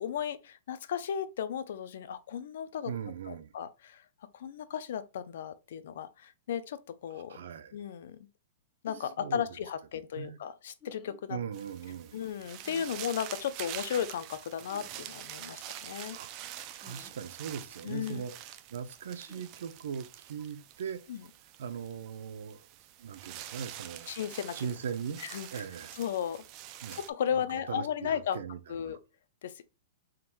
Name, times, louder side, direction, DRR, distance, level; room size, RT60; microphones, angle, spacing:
voice 1, 0.0-2.9 3.3-4.0 4.3-7.4 7.7-8.2 8.8-11.4 12.1-16.2 17.8-18.2 21.1-21.2 24.1-24.6 25.2-25.6 25.9-26.4 26.9-28.4 28.7-29.0 29.4-29.6, left 8 dB, 65° left, 0.5 m, -35 dB
voice 2, 2.9-3.5 7.3-7.7 9.2-9.4 10.2-10.4 11.3-12.2 16.1-16.3 16.8-18.3 18.7-21.0 21.6-22.7 23.0-24.1 24.5-25.2 25.5-26.0 26.8-27.0 27.3-29.0, right 7 dB, 75° right, 0.7 m, -39 dB
sound 1, 8.8-9.1 10.8-11.2 12.6-12.9 14.7-14.9 16.8-17.2 19.3-19.5, left 2 dB, 15° left, 0.9 m, -53 dB
sound 2, 11.5-27.1, right 12 dB, 30° right, 0.4 m, -46 dB
3.7 x 2.6 x 4.5 m
supercardioid pair, 165°, 0 cm